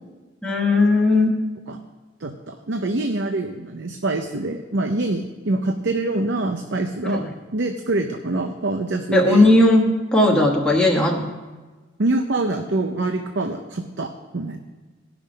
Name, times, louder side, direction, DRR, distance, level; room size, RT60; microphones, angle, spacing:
voice 1, 0.4-1.3 7.0-7.3 9.1-11.2, left 2 dB, 5° left, -2 dB, 1.3 m, -17 dB
voice 2, 2.2-9.5 12.0-14.6, right 2 dB, 65° right, 5 dB, 0.7 m, -25 dB
17.5 x 6.1 x 5.2 m, 1.3 s
head